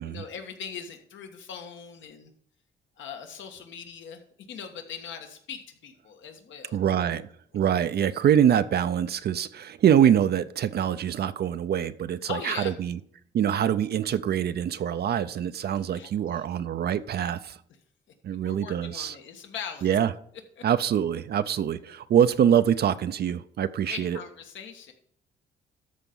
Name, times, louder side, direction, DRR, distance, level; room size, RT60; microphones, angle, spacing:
voice 1, 0.0-2.3 3.0-4.2 4.5-6.8 12.3-12.7 15.6-16.5 18.4-19.9 20.6-20.7 23.8-24.9, left 7 dB, 75° left, 5 dB, 1.5 m, -40 dB
voice 2, 6.7-7.3 7.5-13.0 13.3-17.6 18.2-19.1 19.8-20.1 20.6-24.2, right 9 dB, 55° right, 12 dB, 0.5 m, -24 dB
13.0 x 4.5 x 5.5 m, 0.64 s
cardioid pair, 90°, 20 cm